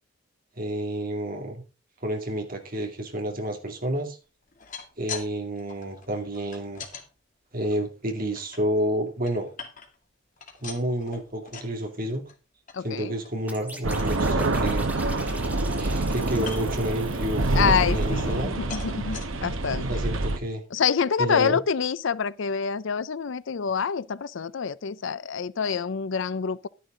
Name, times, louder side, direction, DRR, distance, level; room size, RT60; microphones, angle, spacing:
voice 1, 0.6-1.6 2.0-4.2 5.0-6.8 7.5-9.5 10.6-12.2 12.8-14.9 15.8-18.6 19.9-20.6 21.2-21.6, right 1 dB, 45° right, 2.5 m, -30 dB
sound 1, 4.4-5.3 5.6-7.0 7.6-8.6 9.0-10.1 10.4-11.8 12.1-12.4 12.7-12.8 13.2-13.4 13.7-14.1 14.6-14.7 15.0-15.8 16.4-16.8 17.4-18.4 18.7-19.3 19.9-20.0 20.3-20.4, left 6 dB, 40° left, 2.1 m, -41 dB
voice 2, 12.7-13.2 17.5-20.0 20.7-26.7, left 6 dB, 65° left, 0.5 m, -27 dB
sound 2, 13.5-18.3, right 1 dB, 10° right, 1.6 m, -44 dB
sound 3, 13.8-20.4, right 2 dB, 75° right, 1.2 m, -26 dB
11.5 x 10.0 x 3.8 m
head